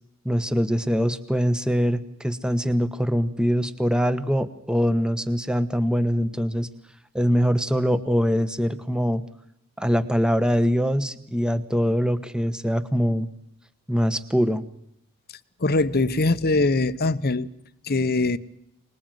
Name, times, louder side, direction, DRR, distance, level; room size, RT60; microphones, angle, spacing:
voice 1, 0.2-6.7 7.1-9.2 9.8-13.3 13.9-14.6, equal, 5° right, 1.2 m, -23 dB
voice 2, 15.6-17.5 17.8-18.4, left 2 dB, 45° left, 0.9 m, -22 dB
26.0 x 20.0 x 9.2 m
head